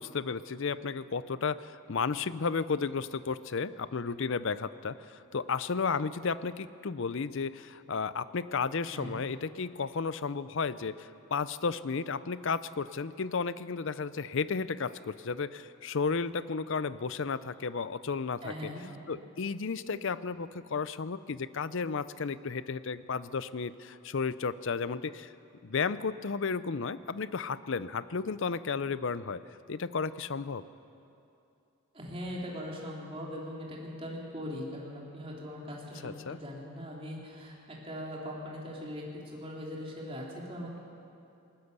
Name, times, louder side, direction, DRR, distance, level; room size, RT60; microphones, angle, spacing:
voice 1, 0.0-18.7 19.1-25.3 25.6-29.4 29.7-30.6 36.0-36.4, left 5 dB, 55° left, 15 dB, 0.5 m, -33 dB
voice 2, 8.8-9.2 18.4-18.9 31.9-40.8, equal, 25° right, -3 dB, 3.5 m, -40 dB
20.0 x 19.5 x 6.8 m, 2.7 s
head